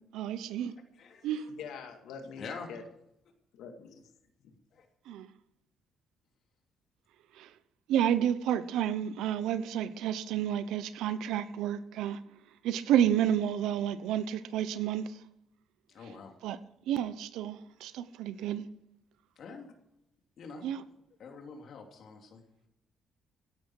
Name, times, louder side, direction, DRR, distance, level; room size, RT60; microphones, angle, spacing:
voice 1, 0.1-0.7 1.2-1.4 5.1-5.3 7.4-7.5 7.9-12.2 12.6-15.1 16.4-16.6 16.9-18.7 20.6-20.8, right 10 dB, 90° right, 0.9 m, -30 dB
voice 2, 0.9-1.5 2.4-2.7 4.7-4.9 15.9-16.3 19.4-19.7 20.4-20.7 21.2-22.4, left 4 dB, 65° left, 3.1 m, -45 dB
voice 3, 1.5-2.9 3.5-4.0, left 6 dB, 85° left, 2.2 m, -44 dB
16.0 x 11.0 x 4.7 m
cardioid pair, 90°, 0 cm